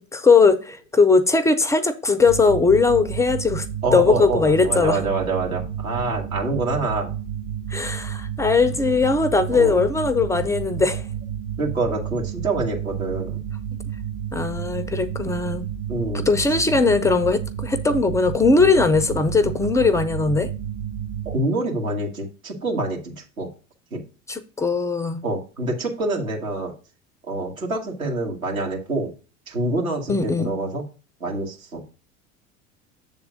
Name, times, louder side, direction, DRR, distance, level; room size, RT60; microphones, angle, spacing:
voice 1, 0.0-3.7 3.9-5.0 7.7-11.0 14.3-15.7 16.3-20.5 24.3-25.2 30.1-30.5, left 4 dB, 10° left, 0.3 m, -19 dB
sound 1, 2.2-21.4, right 9 dB, 60° right, 1.3 m, -31 dB
voice 2, 3.8-7.1 9.5-9.8 11.6-13.4 15.9-16.3 21.3-23.5 23.9-24.0 25.2-26.7 27.3-29.1 29.5-30.8 31.2-31.8, right 2 dB, 80° right, 1.8 m, -26 dB
7.0 x 3.6 x 6.2 m
figure-of-eight pair, 75°, 41 cm